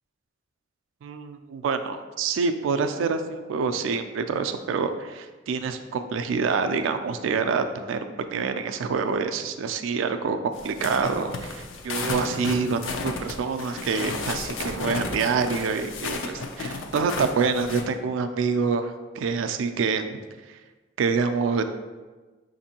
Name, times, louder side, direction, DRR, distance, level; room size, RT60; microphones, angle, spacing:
voice 1, 1.0-20.2 21.0-21.6, right 5 dB, 75° right, 8 dB, 0.3 m, -26 dB
sound 1, 10.5-17.8, left 3 dB, 70° left, 0.4 m, -33 dB
5.0 x 2.6 x 2.8 m, 1.3 s
head